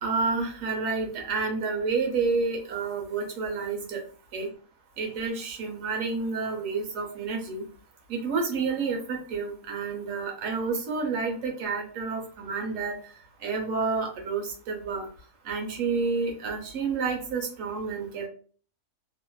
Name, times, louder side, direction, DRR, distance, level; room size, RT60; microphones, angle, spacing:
voice 1, 0.0-4.0 4.3-4.5 5.0-7.6 8.1-12.9 13.4-15.1 15.5-18.3, right 4 dB, 65° right, 2 dB, 1.1 m, -29 dB
2.8 x 2.3 x 2.2 m, 0.42 s
omnidirectional pair, 1.6 m